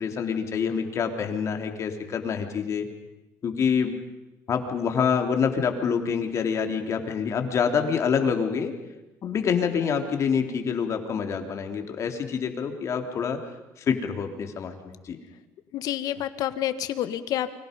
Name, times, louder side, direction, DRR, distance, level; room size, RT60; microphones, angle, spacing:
voice 1, 0.0-2.9 3.4-4.0 4.5-8.7 9.2-13.4 13.9-15.2, left 6 dB, 45° left, 5 dB, 3.4 m, -26 dB
voice 2, 15.7-17.5, left 11 dB, 65° left, 11 dB, 1.8 m, -28 dB
29.5 x 25.0 x 5.4 m, 1.0 s
cardioid pair, 120°, 7 cm